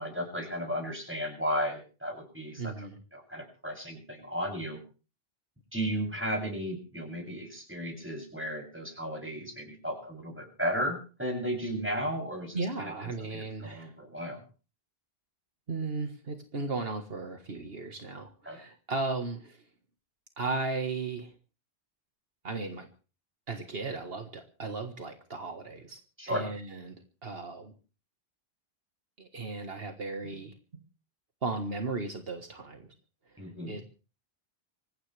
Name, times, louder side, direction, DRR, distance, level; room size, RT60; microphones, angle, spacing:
voice 1, 0.0-2.9 3.1-4.8 5.7-14.4 18.4-18.6 26.2-26.5 33.4-33.8, equal, 10° right, 1 dB, 7.7 m, -34 dB
voice 2, 2.6-3.0 12.5-13.9 15.7-19.6 20.4-21.3 22.4-22.9 23.5-26.0 26.3-27.7 29.2-30.5 31.4-32.9 33.6-33.8, right 3 dB, 65° right, 5 dB, 1.8 m, -36 dB
25.0 x 15.5 x 3.4 m, 0.37 s
omnidirectional pair, 1.1 m